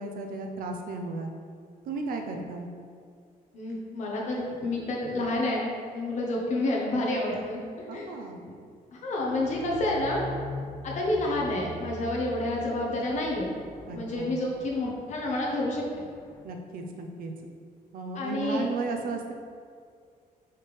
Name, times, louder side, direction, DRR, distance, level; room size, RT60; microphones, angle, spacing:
voice 1, 0.0-1.3 1.9-2.7 7.9-8.4 13.9-14.4 16.4-17.3 17.9-19.3, right 3 dB, 70° right, 3 dB, 0.7 m, -34 dB
voice 2, 3.5-8.1 8.4-8.5 8.9-10.2 10.8-13.5 13.9-15.9 18.1-18.6, left 1 dB, 50° left, -2 dB, 1.1 m, -29 dB
sound 1, 9.2-16.4, left 2 dB, 15° left, 0.3 m, -43 dB
5.6 x 5.2 x 3.3 m, 2.2 s
cardioid pair, 180°, 15 cm